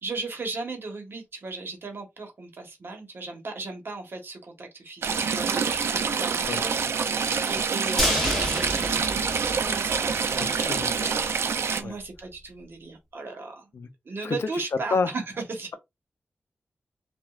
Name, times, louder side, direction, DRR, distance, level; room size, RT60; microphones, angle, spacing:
voice 1, 0.0-10.9 11.7-13.7 14.0-15.2 15.5-15.7, right 3 dB, 60° right, 1.1 m, -37 dB
Stream / Trickle dribble, 5.0-11.8, right 6 dB, 85° right, 0.3 m, -26 dB
sound 1, 8.0-10.1 10.5-10.6 10.9-11.0, left 1 dB, 10° left, 1.8 m, -29 dB
voice 2, 10.4-11.2 11.8-11.9 13.7-13.9 14.2-14.5 14.9-15.1, left 4 dB, 75° left, 0.5 m, -29 dB
2.9 x 2.4 x 2.3 m
cardioid pair, 65°, 4 cm